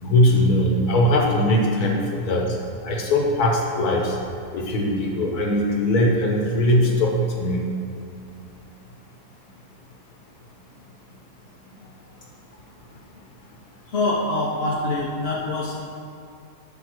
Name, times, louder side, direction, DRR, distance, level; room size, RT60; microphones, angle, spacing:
voice 1, 0.0-2.6 2.8-4.2 4.5-7.6, left 1 dB, 65° left, 0 dB, 1.6 m, -20 dB
voice 2, 13.9-15.8, left 2 dB, 50° left, -4 dB, 0.9 m, -24 dB
10.5 x 3.7 x 6.0 m, 2.4 s
omnidirectional pair, 1.8 m